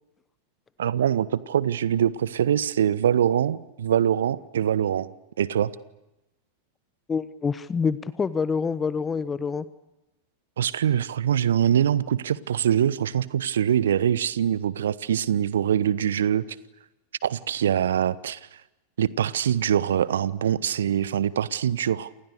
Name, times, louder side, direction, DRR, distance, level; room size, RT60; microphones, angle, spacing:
voice 1, 0.8-5.1 5.4-5.7 10.6-16.4 17.2-18.4 19.0-22.1, right 9 dB, 65° right, 1.0 m, -23 dB
voice 2, 7.1-9.6, left 5 dB, 15° left, 1.0 m, -26 dB
29.5 x 27.5 x 6.8 m
figure-of-eight pair, 90°, 0 cm